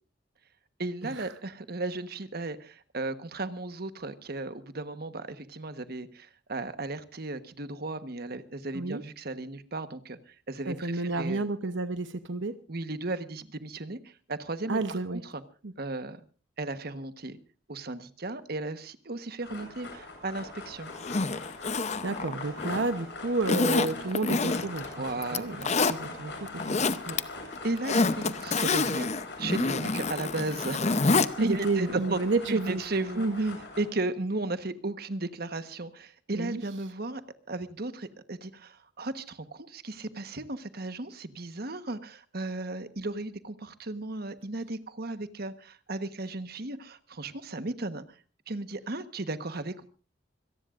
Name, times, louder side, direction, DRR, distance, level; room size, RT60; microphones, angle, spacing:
voice 1, 0.8-11.4 12.7-15.4 15.8-16.2 16.6-17.4 17.7-20.9 23.9-24.1 24.9-25.8 27.6-29.1 29.4-31.1 31.4-32.2 32.5-33.5 33.8-37.2 37.5-48.0 48.5-49.8, right 2 dB, 55° right, 11 dB, 1.2 m, -35 dB
voice 2, 10.6-12.5 14.7-15.2 15.6-15.7 22.0-25.0 25.3-25.6 25.9-27.2 31.4-32.8 33.2-33.6 36.3-36.6, right 3 dB, 75° right, 10 dB, 0.9 m, -30 dB
sound 1, 19.4-33.8, left 2 dB, 65° left, 8.0 m, -42 dB
Zipper (clothing), 20.9-22.9 23.5-24.9 25.2-26.0 26.5-27.2 27.5-31.3 31.6-31.7, left 3 dB, 35° left, 0.7 m, -27 dB
25.5 x 18.0 x 2.5 m, 0.36 s
head